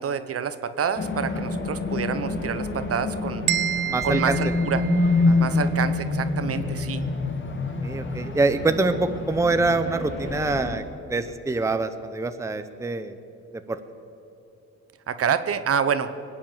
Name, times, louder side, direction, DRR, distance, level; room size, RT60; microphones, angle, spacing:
voice 1, 0.0-3.4 4.0-4.8 5.4-7.0 15.1-16.1, right 7 dB, 50° right, 11 dB, 0.9 m, -27 dB
sound 1, 1.0-10.8, left 3 dB, 40° left, 1.9 m, -26 dB
sound 2, 3.5-5.5, right 11 dB, 80° right, 0.9 m, -29 dB
voice 2, 3.9-4.4 5.3-5.7 7.8-10.8 11.1-13.2 13.7-13.8, right 3 dB, 10° right, 9 dB, 0.7 m, -25 dB
21.5 x 8.7 x 7.4 m, 2.8 s
cardioid pair, 90°, 30 cm